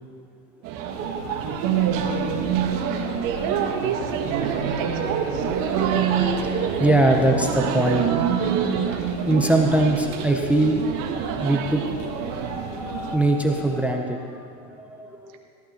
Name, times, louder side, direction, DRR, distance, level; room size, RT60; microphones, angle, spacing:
sound 1, 0.6-13.2, right 8 dB, 50° right, 1.3 m, -26 dB
sound 2, 0.9-13.8, left 2 dB, 45° left, 2.0 m, -40 dB
voice 1, 3.1-5.5, right 7 dB, 75° right, 2 dB, 1.6 m, -30 dB
voice 2, 4.3-10.8 11.4-15.4, right 1 dB, 5° right, 3 dB, 0.6 m, -24 dB
16.5 x 11.5 x 2.9 m, 2.6 s
supercardioid pair, 125°, 41 cm